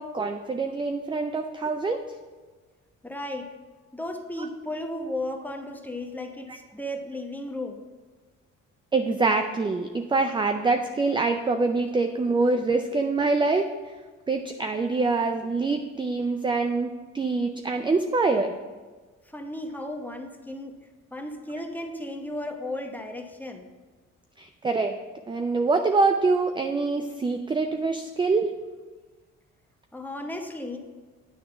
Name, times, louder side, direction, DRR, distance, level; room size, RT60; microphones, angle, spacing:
voice 1, 0.0-2.0 8.9-13.7 14.3-18.5 24.4-25.0 25.3-28.5, right 3 dB, 15° right, 6 dB, 0.4 m, -25 dB
voice 2, 3.0-3.5 3.9-7.8 19.3-20.8 21.1-23.7 29.9-30.8, left 1 dB, 5° left, 3 dB, 0.9 m, -35 dB
9.4 x 3.6 x 6.8 m, 1.4 s
cardioid pair, 90°, 30 cm